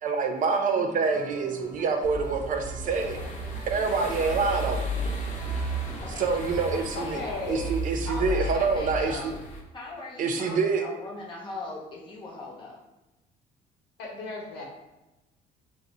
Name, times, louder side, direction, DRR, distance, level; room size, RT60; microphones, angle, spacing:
voice 1, 0.0-3.2 3.7-4.8 6.2-7.2 7.5-9.3 10.2-10.8, right 4 dB, 50° right, 4 dB, 0.5 m, -26 dB
sound 1, 1.0-7.8, right 2 dB, 25° right, 1.0 m, -47 dB
sound 2, 2.0-9.1, right 1 dB, 75° right, 0.9 m, -34 dB
sound 3, 2.9-9.6, left 1 dB, 45° left, 0.6 m, -41 dB
voice 2, 6.0-7.5 8.3-9.4 9.7-12.8, left 2 dB, 30° left, -3 dB, 1.0 m, -41 dB
voice 3, 7.0-7.8 8.1-8.6 14.0-14.6, left 3 dB, 80° left, -1 dB, 0.9 m, -36 dB
2.6 x 2.3 x 4.1 m, 1.0 s
cardioid pair, 110°, 17 cm